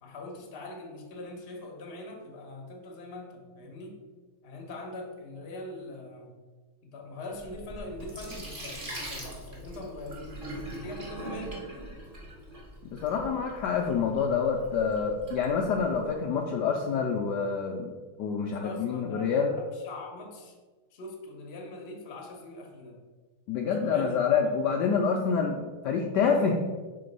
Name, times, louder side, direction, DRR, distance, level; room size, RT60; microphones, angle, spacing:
voice 1, 0.0-4.0 4.4-6.4 6.8-11.6 18.5-20.6 20.9-23.0 23.6-24.1, left 2 dB, 40° left, 0 dB, 0.8 m, -42 dB
Sink (filling or washing), 7.3-16.1, right 1 dB, 30° right, 1.1 m, -42 dB
voice 2, 12.9-17.9 18.2-19.5 23.5-26.6, left 6 dB, 80° left, 1 dB, 0.9 m, -27 dB
5.1 x 3.8 x 5.2 m, 1.4 s
omnidirectional pair, 2.4 m